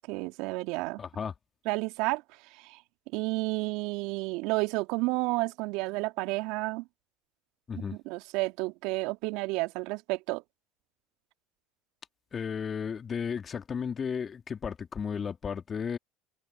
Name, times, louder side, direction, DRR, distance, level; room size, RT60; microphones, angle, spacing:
voice 1, 0.1-1.0 1.7-2.2 2.5-2.8 3.1-6.9 7.7-10.4, right 23 dB, 65° right, 2.5 m, -31 dB
voice 2, 1.0-1.3 7.7-8.0 12.3-16.0, left 6 dB, 35° left, 2.8 m, -34 dB
hypercardioid pair, 80°, 0 cm